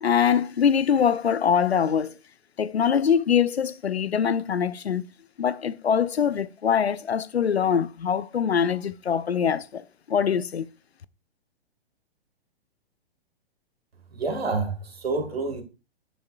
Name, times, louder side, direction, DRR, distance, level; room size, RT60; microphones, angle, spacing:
voice 1, 0.0-2.1 2.6-5.1 5.4-10.7, left 7 dB, 80° left, 0.5 m, -23 dB
voice 2, 14.1-15.6, right 3 dB, 70° right, 1.6 m, -28 dB
8.9 x 6.3 x 2.3 m
figure-of-eight pair, 115°, 32 cm